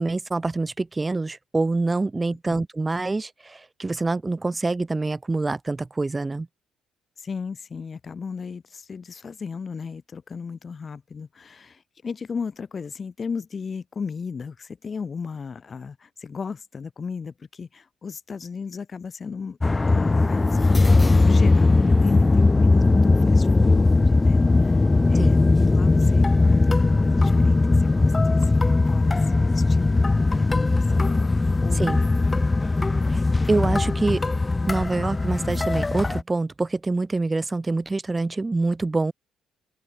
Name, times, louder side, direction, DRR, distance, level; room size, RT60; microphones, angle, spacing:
voice 1, 0.0-6.5 25.2-25.4 31.7-32.0 33.1-33.2 33.5-34.2 34.7-39.1, right 3 dB, 20° right, 2.8 m, -25 dB
voice 2, 7.2-19.6 19.9-24.8 25.1-32.0 33.8-34.0, left 5 dB, 35° left, 2.8 m, -35 dB
sound 1, 19.6-36.2, left 3 dB, 20° left, 1.8 m, -19 dB
figure-of-eight pair, 45°, 0 cm